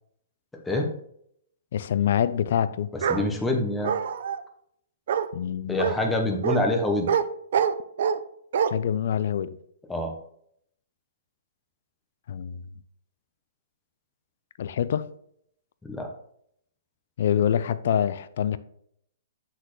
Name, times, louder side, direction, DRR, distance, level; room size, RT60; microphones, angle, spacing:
voice 1, 1.7-2.9 5.3-6.0 6.3-6.4 8.7-9.6 12.3-12.7 14.6-15.1 17.2-18.6, left 9 dB, 55° left, 0.4 m, -25 dB
Bark, 3.0-3.2 3.8-4.4 5.1-5.3 5.8-6.0 6.4-6.6 7.1-7.2 7.5-8.2 8.5-8.7, right 8 dB, 60° right, 0.4 m, -24 dB
voice 2, 3.1-3.9 5.7-7.1 9.9-10.1 15.8-16.1, left 1 dB, 5° left, 0.7 m, -25 dB
7.8 x 4.1 x 3.1 m
hypercardioid pair, 160°, 0 cm